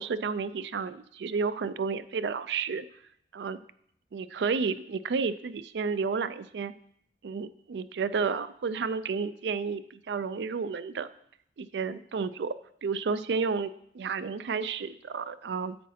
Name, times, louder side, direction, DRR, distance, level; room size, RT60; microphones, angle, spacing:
voice 1, 0.0-2.9 3.3-3.6 4.1-6.7 7.2-11.1 11.6-12.5 12.8-15.8, right 5 dB, 70° right, 15 dB, 0.4 m, -31 dB
10.0 x 8.3 x 2.8 m, 0.70 s
head